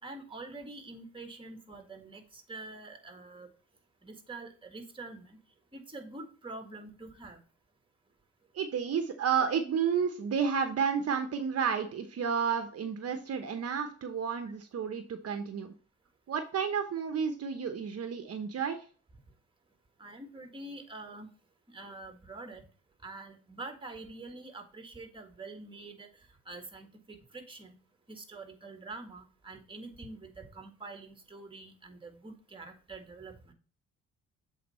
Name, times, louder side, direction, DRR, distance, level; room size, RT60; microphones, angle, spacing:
voice 1, 0.0-3.5 4.0-5.4 5.7-7.4 20.0-21.3 21.7-22.7 23.0-27.8 28.1-33.5, right 2 dB, 15° right, 5 dB, 1.7 m, -46 dB
voice 2, 8.5-15.7 16.3-18.9, right 7 dB, 55° right, 7 dB, 1.0 m, -31 dB
7.8 x 4.2 x 4.2 m, 0.40 s
cardioid pair, 90°, 30 cm